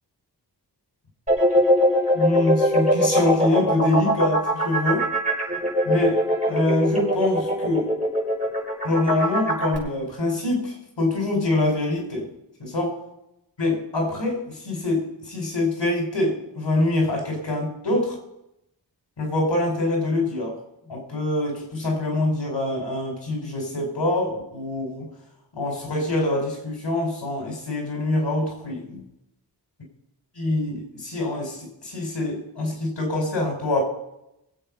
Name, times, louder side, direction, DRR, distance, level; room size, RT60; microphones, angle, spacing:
sound 1, 1.3-9.8, equal, 15° right, 6.5 m, -21 dB
voice 1, 2.1-5.1 5.8-7.9 8.8-12.3 12.6-13.0 13.6-18.2 19.2-20.6 20.9-25.1 25.5-29.1 30.3-33.8, left 2 dB, 90° left, 0 dB, 5.0 m, -25 dB
21.5 x 8.6 x 5.5 m, 0.84 s
cardioid pair, 40°, 42 cm